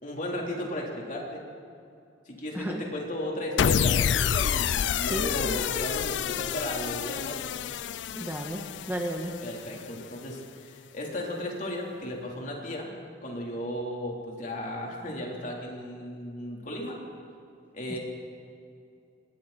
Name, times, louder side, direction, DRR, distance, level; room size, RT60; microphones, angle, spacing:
voice 1, 0.0-1.4 2.3-7.5 9.4-12.9 13.2-17.0 17.7-18.0, left 1 dB, 45° left, -2 dB, 4.0 m, -35 dB
sound 1, 3.6-9.9, left 8 dB, 70° left, 0.4 m, -28 dB
voice 2, 4.9-5.6 8.1-8.6 8.9-9.3 17.9-18.0, right 1 dB, 10° right, 1 dB, 1.5 m, -33 dB
28.0 x 21.0 x 4.5 m, 2.6 s
head